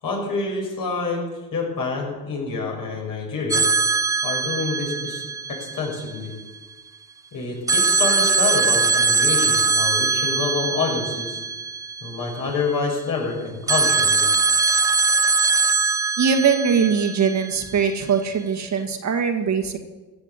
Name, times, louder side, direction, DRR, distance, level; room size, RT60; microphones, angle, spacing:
voice 1, 0.0-1.2 1.5-3.7 4.2-5.2 5.5-6.3 7.3-11.4 12.0-14.3, left 4 dB, 55° left, -1 dB, 6.3 m, -27 dB
sound 1, 3.5-6.4 7.7-12.6 13.7-17.9, right 4 dB, 10° right, 0.4 m, -21 dB
voice 2, 16.2-19.8, right 6 dB, 45° right, 5 dB, 1.9 m, -21 dB
16.0 x 7.2 x 8.4 m, 1.2 s
hypercardioid pair, 65°, 38 cm